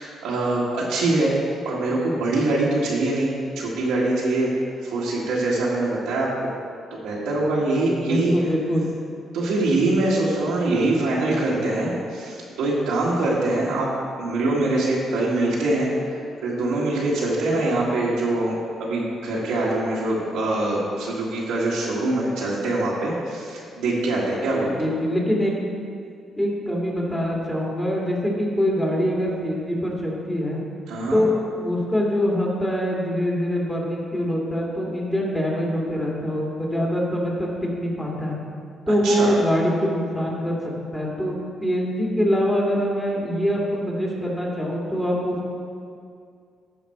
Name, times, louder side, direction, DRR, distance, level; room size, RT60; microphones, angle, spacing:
voice 1, 0.0-4.5 4.8-6.5 6.9-8.3 9.3-13.9 14.2-18.5 18.8-24.9 30.9-31.2 38.9-39.4, right 2 dB, 90° right, -6 dB, 1.5 m, -23 dB
voice 2, 7.9-8.9 24.8-25.5 26.4-30.6 31.1-38.4 38.9-40.6 40.9-45.5, equal, 10° left, -3 dB, 2.3 m, -24 dB
13.0 x 5.1 x 4.3 m, 2.3 s
cardioid pair, 90°, 0 cm